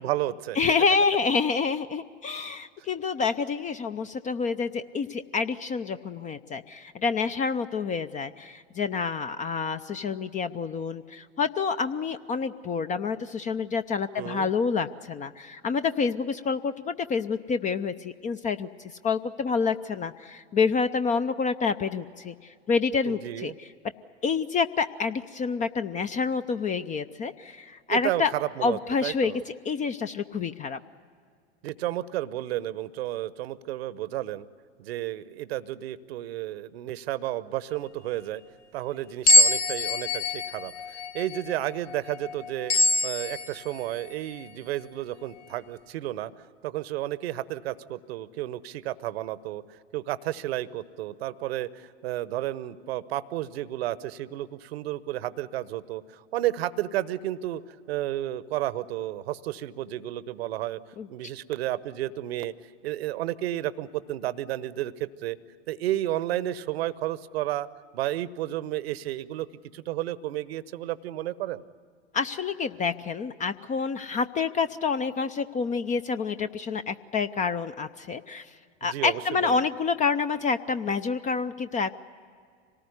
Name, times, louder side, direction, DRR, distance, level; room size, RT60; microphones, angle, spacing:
voice 1, 0.0-0.6 14.1-14.5 23.0-23.5 27.9-29.4 31.6-34.5 34.8-38.4 38.7-42.7 43.0-46.3 46.6-49.6 49.9-57.6 57.9-60.8 61.1-62.5 62.8-65.4 65.7-67.7 67.9-69.5 69.7-71.6 78.8-79.6, right 14 dB, 60° right, 17 dB, 1.0 m, -32 dB
voice 2, 0.6-23.7 24.2-28.3 28.6-30.8 61.0-61.1 72.1-78.5 78.8-81.9, left 5 dB, 20° left, 10 dB, 0.6 m, -28 dB
sound 1, 39.3-44.1, left 2 dB, 75° left, 1.4 m, -24 dB
25.5 x 18.5 x 9.7 m, 2.1 s
figure-of-eight pair, 90°, 34 cm